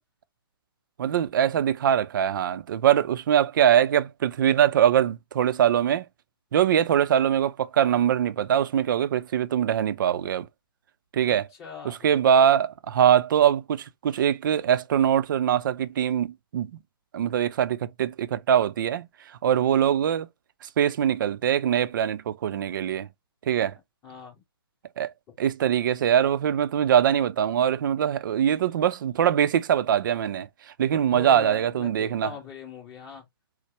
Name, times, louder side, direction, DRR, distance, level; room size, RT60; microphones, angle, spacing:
voice 1, 1.0-6.0 6.5-10.5 11.1-11.4 11.8-16.7 17.1-19.1 19.4-20.3 20.6-23.1 23.5-23.7 25.0-25.1 25.4-30.5 30.8-32.3, right 9 dB, 55° right, 0.4 m, -22 dB
voice 2, 11.2-12.0 24.0-24.4 31.1-33.2, left 7 dB, 25° left, 1.7 m, -41 dB
4.4 x 2.0 x 3.1 m
hypercardioid pair, 140°, 13 cm